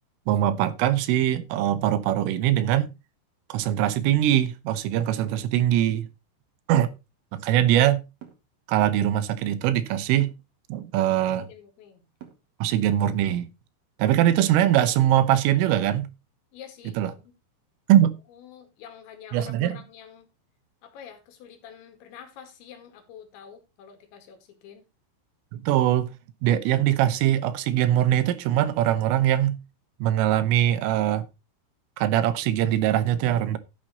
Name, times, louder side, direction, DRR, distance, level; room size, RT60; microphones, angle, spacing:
voice 1, 0.3-2.9 3.5-6.1 6.7-6.9 7.3-8.0 8.7-10.3 10.7-11.5 12.6-13.5 14.0-16.1 17.0-17.1 17.9-18.2 19.3-19.8 25.5-26.1 26.4-29.6 30.0-31.3 32.0-33.6, right 12 dB, 85° right, 3.6 m, -22 dB
sound 1, 8.2-8.5 10.2-10.6 12.2-12.5 14.2-14.6, right 9 dB, 55° right, 2.2 m, -46 dB
voice 2, 11.5-12.0 16.5-17.3 18.3-20.3 20.8-24.8, left 8 dB, 70° left, 4.3 m, -47 dB
12.5 x 8.4 x 4.1 m
omnidirectional pair, 5.7 m